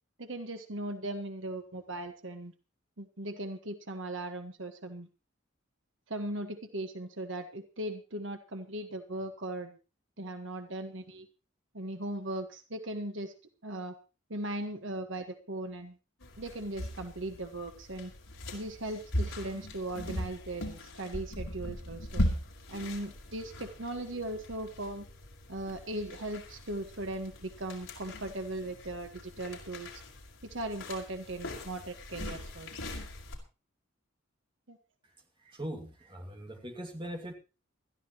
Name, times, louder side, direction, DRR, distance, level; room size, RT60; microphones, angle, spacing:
voice 1, 0.2-2.5 3.0-5.1 6.1-9.8 10.2-11.3 11.7-13.3 13.6-13.9 14.3-16.0 16.4-18.1 18.5-22.2 22.7-25.0 25.5-29.9 30.4-32.7 34.7-34.8, right 1 dB, 65° right, 6 dB, 1.5 m, -38 dB
sound 1, 16.2-33.4, equal, 75° left, 4.8 m, -39 dB
voice 2, 35.4-37.3, equal, 25° right, 2 dB, 2.4 m, -41 dB
20.5 x 13.5 x 3.1 m, 0.32 s
head